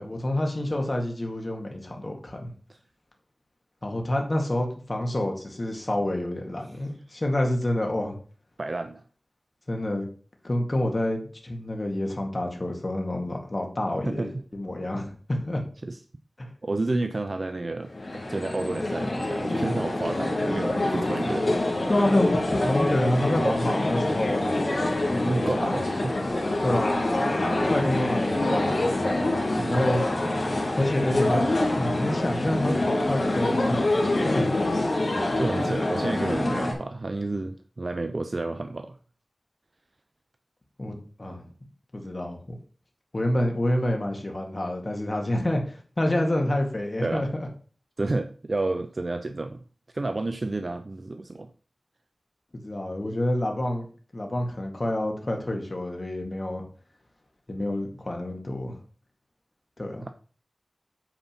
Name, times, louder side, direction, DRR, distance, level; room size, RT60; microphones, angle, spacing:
voice 1, 0.0-2.5 3.8-8.1 9.7-10.1 10.4-15.6 16.4-16.5 21.9-24.4 25.1-25.9 26.6-27.0 27.6-28.8 29.6-30.0 30.8-31.4 31.7-33.9 34.1-34.4 35.7-35.8 40.8-41.5 41.9-42.6 43.1-47.5 52.5-53.9 54.1-56.6 57.5-58.8 59.8-60.1, left 1 dB, 40° left, 2 dB, 2.1 m, -28 dB
voice 2, 8.6-9.0 14.0-14.3 15.8-16.0 16.6-21.5 23.4-23.6 25.2-26.2 29.6-29.8 35.4-39.0 47.0-47.3 48.0-49.6 49.9-51.5 60.0-60.1, right 2 dB, 55° right, 8 dB, 0.6 m, -30 dB
sound 1, 17.9-36.7, left 2 dB, 75° left, 3.0 m, -26 dB
9.1 x 4.2 x 5.8 m, 0.41 s
wide cardioid pair, 70°, 0 cm